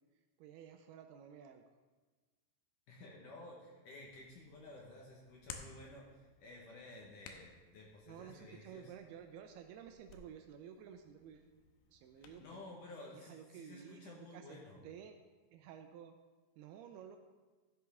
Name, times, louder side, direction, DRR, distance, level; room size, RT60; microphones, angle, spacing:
voice 1, 0.4-1.6 8.1-11.5 11.9-12.5 13.1-14.6 14.8-15.2 15.5-16.2 16.6-17.2, right 8 dB, 80° right, 6 dB, 2.4 m, -53 dB
voice 2, 2.9-8.9 12.2-14.9, left 2 dB, 65° left, -2 dB, 2.2 m, -53 dB
Hands, 4.0-12.4, left 6 dB, 85° left, 2.9 m, -57 dB
13.5 x 8.0 x 3.5 m, 1.3 s
omnidirectional pair, 4.9 m